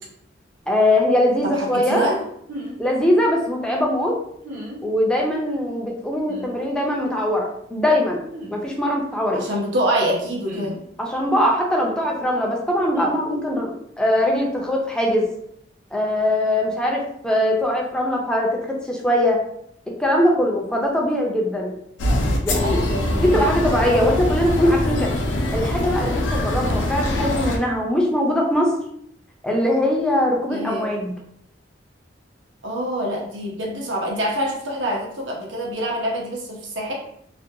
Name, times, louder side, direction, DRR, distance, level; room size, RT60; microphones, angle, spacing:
voice 1, 0.7-2.1 2.8-4.2 4.8-8.2 8.5-9.4 11.0-15.3 15.9-19.4 20.0-21.7 22.4-22.9 23.1-25.2 25.5-28.7 29.4-31.1, left 1 dB, 5° left, -1 dB, 0.4 m, -21 dB
voice 2, 1.4-2.2 9.3-10.7 22.6-23.9 30.5-30.9 32.6-36.9, right 1 dB, 90° right, -1 dB, 0.7 m, -26 dB
sound 1, 2.5-2.8 4.4-4.8 6.3-6.5 8.3-8.5 10.4-10.8 12.9-13.1, equal, 45° right, 0.5 m, -35 dB
sound 2, 22.0-27.6, left 1 dB, 85° left, 0.5 m, -23 dB
2.5 x 2.2 x 2.6 m, 0.70 s
head